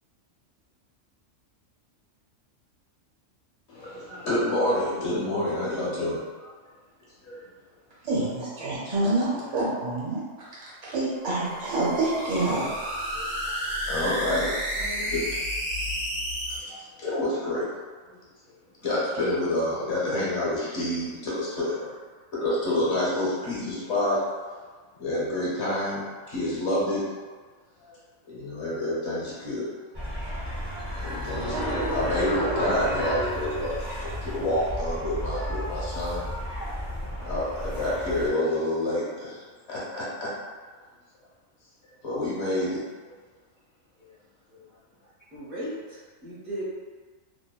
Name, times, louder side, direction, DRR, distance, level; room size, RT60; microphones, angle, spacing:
voice 1, 3.7-6.5 7.2-7.4 13.1-15.2 16.5-17.7 18.8-22.0 22.3-24.2 25.0-26.0 26.3-27.1 27.9-28.0 28.3-29.7 31.0-36.2 37.2-40.3 42.0-43.1, left 1 dB, 60° left, -8 dB, 1.1 m, -28 dB
voice 2, 8.0-12.8, right 2 dB, 70° right, -7 dB, 1.2 m, -27 dB
voice 3, 8.6-9.7 14.8-15.2 37.2-37.4 45.3-46.6, equal, 50° right, -7 dB, 0.8 m, -39 dB
sound 1, 11.2-16.6, equal, 85° right, 1.1 m, -31 dB
sound 2, 29.9-38.3, equal, 30° right, 0.5 m, -31 dB
2.9 x 2.2 x 2.2 m, 1.5 s
omnidirectional pair, 1.3 m